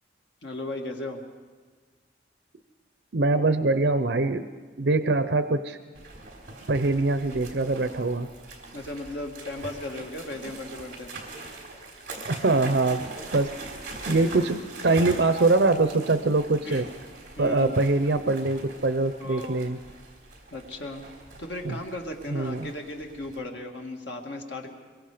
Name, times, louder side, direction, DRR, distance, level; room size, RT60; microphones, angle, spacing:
voice 1, 0.4-1.2 8.7-11.1 16.6-16.8 17.4-17.7 19.2-19.6 20.5-21.1 21.4-24.7, left 1 dB, 90° left, 2 dB, 2.1 m, -36 dB
voice 2, 3.1-4.5 4.8-5.8 6.7-8.3 12.3-13.1 13.3-13.5 14.1-16.9 17.4-19.8 21.6-21.8 22.3-22.7, right 3 dB, 75° right, 10 dB, 0.7 m, -23 dB
sound 1, 5.9-23.4, right 2 dB, 45° right, 4.1 m, -42 dB
24.5 x 23.0 x 5.1 m, 1.5 s
head